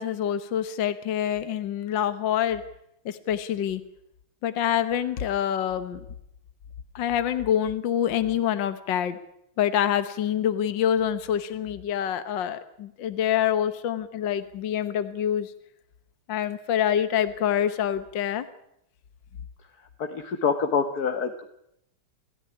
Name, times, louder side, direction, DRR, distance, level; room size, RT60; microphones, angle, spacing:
voice 1, 0.0-2.6 3.1-3.8 4.4-6.0 7.0-9.2 9.6-15.5 16.3-18.5, left 10 dB, 65° left, 11 dB, 1.8 m, -26 dB
voice 2, 20.0-21.5, left 6 dB, 50° left, 6 dB, 1.8 m, -26 dB
28.5 x 14.5 x 9.8 m, 0.79 s
omnidirectional pair, 2.2 m